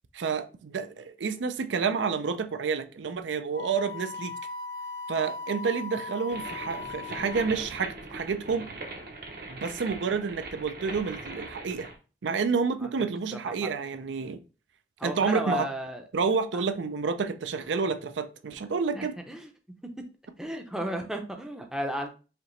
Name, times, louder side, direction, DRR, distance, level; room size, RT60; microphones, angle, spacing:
voice 1, 0.1-4.3 5.1-8.7 9.5-11.9 12.2-14.4 15.0-15.7 16.1-19.2, right 5 dB, 85° right, 0.5 m, -29 dB
Wind instrument woodwind instrument, 3.5-7.7, left 4 dB, 75° left, 0.9 m, -38 dB
sound 1, 6.3-12.0, right 2 dB, 55° right, 0.8 m, -40 dB
voice 2, 13.3-13.7 15.0-16.0 16.5-16.6 18.9-19.5 20.4-22.1, equal, 5° right, 0.5 m, -33 dB
5.0 x 2.9 x 3.1 m
head